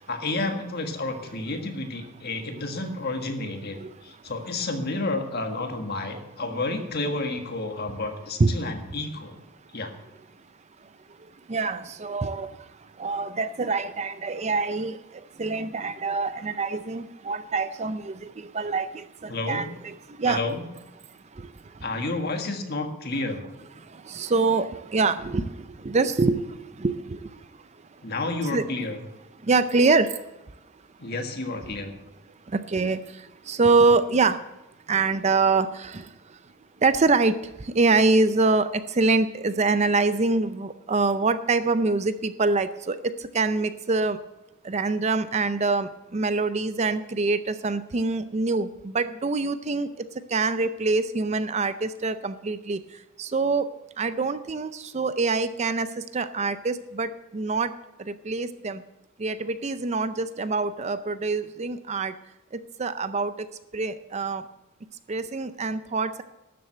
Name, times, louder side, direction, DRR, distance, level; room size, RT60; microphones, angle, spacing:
voice 1, 0.1-9.4 9.7-9.9 19.3-19.7 20.2-20.6 21.8-23.5 28.0-29.0 31.0-32.0, left 2 dB, 45° left, 5 dB, 1.6 m, -30 dB
voice 2, 11.5-12.6 13.0-15.0 15.4-20.4 21.4-21.5 23.9-27.3 28.5-28.7 29.5-30.1 32.5-33.0 33.5-34.4 34.9-36.1 36.8-44.2 44.6-49.9 50.3-52.8 53.2-53.7 54.0-55.9 56.1-57.7 58.1-58.8 59.2-62.1 62.5-63.3 63.7-64.4 65.1-66.2, right 3 dB, 30° right, 12 dB, 0.5 m, -25 dB
12.0 x 7.6 x 7.9 m, 0.98 s
head